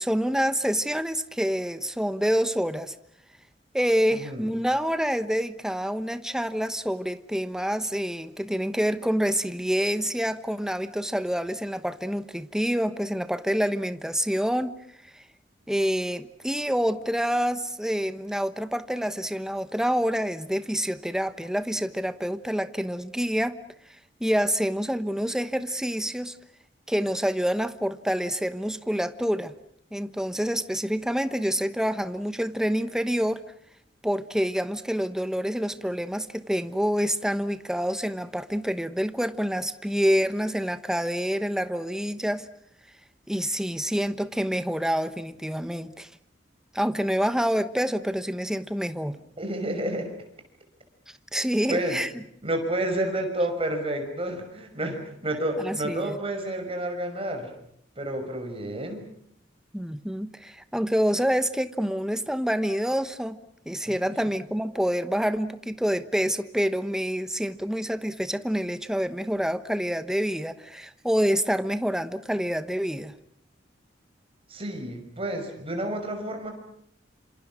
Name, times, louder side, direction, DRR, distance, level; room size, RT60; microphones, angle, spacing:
voice 1, 0.0-2.9 3.7-14.7 15.1-15.2 15.7-23.6 24.2-26.3 26.9-29.5 29.9-33.4 34.0-42.5 43.3-46.1 46.7-49.2 51.3-52.1 55.6-56.2 59.7-63.4 63.7-73.1, equal, 5° right, 12 dB, 1.1 m, -27 dB
voice 2, 4.1-4.4 49.4-50.1 51.7-52.0 52.4-57.5 58.0-59.1 63.9-64.0 74.5-76.5, right 1 dB, 30° right, 5 dB, 5.8 m, -30 dB
27.0 x 26.5 x 6.3 m, 0.70 s
head